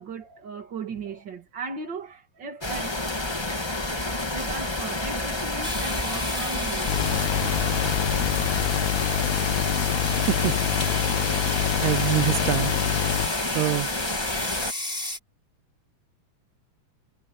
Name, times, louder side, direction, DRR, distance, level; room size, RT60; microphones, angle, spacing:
voice 1, 0.0-2.9 4.3-7.2, right 4 dB, 40° right, 2.4 m, -37 dB
sound 1, 2.6-14.7, left 2 dB, 40° left, 0.3 m, -29 dB
sound 2, 5.6-15.2, left 1 dB, 15° left, 6.6 m, -35 dB
sound 3, 6.9-13.3, left 14 dB, 75° left, 1.8 m, -26 dB
voice 2, 11.8-12.7 13.6-13.9, right 17 dB, 75° right, 1.8 m, -24 dB
omnidirectional pair, 3.7 m